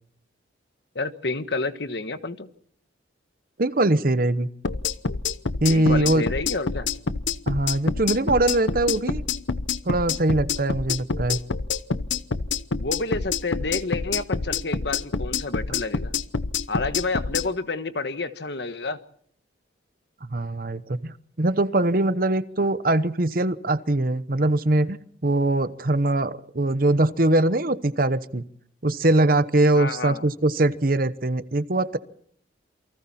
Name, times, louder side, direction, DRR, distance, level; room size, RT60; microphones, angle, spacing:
voice 1, 0.9-2.5 5.7-6.9 12.8-16.1 16.7-19.0 22.6-22.7 29.7-30.3, left 3 dB, 60° left, 10 dB, 1.4 m, -29 dB
voice 2, 3.6-4.5 5.6-6.3 7.5-9.2 9.8-11.4 20.2-28.4 28.8-32.0, right 2 dB, 50° right, 14 dB, 1.0 m, -22 dB
sound 1, 4.6-17.5, left 5 dB, 85° left, 0.9 m, -27 dB
28.5 x 24.0 x 4.3 m, 0.66 s
head